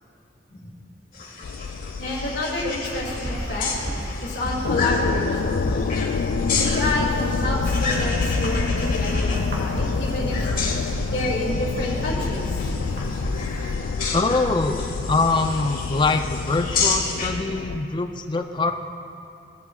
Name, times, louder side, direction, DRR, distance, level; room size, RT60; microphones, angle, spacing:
sound 1, 1.1-17.3, left 4 dB, 50° left, 1.6 m, -32 dB
sound 2, 1.4-17.8, left 5 dB, 90° left, 0.3 m, -28 dB
voice 1, 2.0-3.7 4.2-5.8 6.6-10.4 11.1-12.4 13.2-13.3, left 1 dB, 70° left, -3 dB, 2.3 m, -28 dB
sound 3, 2.8-13.8, equal, 75° right, 1.9 m, -32 dB
voice 2, 14.1-18.7, left 3 dB, 25° left, 5 dB, 0.4 m, -23 dB
18.5 x 8.3 x 2.3 m, 2.6 s
head